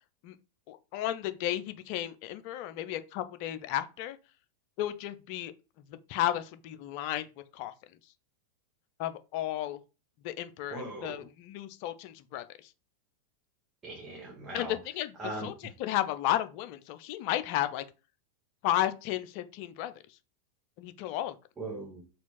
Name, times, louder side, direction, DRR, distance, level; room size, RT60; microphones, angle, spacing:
voice 1, 0.7-4.2 4.8-5.5 5.9-7.3 7.5-7.7 9.0-9.8 10.2-12.7 14.5-15.5 15.8-17.8 18.6-19.9 20.8-21.3, left 13 dB, 45° left, 0.3 m, -33 dB
voice 2, 10.7-11.3 13.8-14.8 15.2-15.7 21.6-22.0, right 2 dB, 20° right, 0.8 m, -39 dB
4.2 x 2.3 x 3.0 m
figure-of-eight pair, 90°, 0 cm